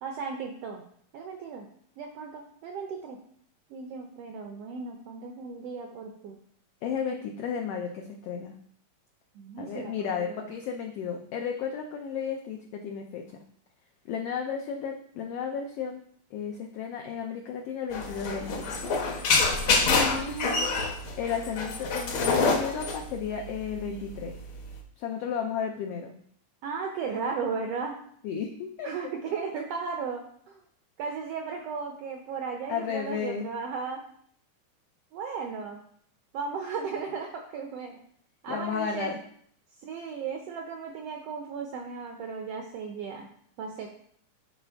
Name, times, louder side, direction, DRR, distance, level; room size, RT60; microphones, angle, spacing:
voice 1, 0.0-0.8 1.1-1.7 2.0-3.2 3.7-6.4 9.3-10.5 19.8-20.9 26.6-28.0 28.8-30.6 31.0-34.0 35.1-35.8 36.3-38.0 38.4-39.2 39.8-43.3 43.6-43.9, right 5 dB, 80° right, 2 dB, 1.4 m, -36 dB
voice 2, 6.8-8.5 9.6-13.4 14.0-16.0 16.3-18.8 19.9-20.3 21.2-24.4 25.0-26.1 28.2-28.9 32.7-33.5 38.5-39.2, left 7 dB, 85° left, 3 dB, 1.3 m, -33 dB
sound 1, 17.9-24.8, left 4 dB, 65° left, 1.3 m, -27 dB
9.7 x 4.4 x 3.4 m, 0.64 s
omnidirectional pair, 3.5 m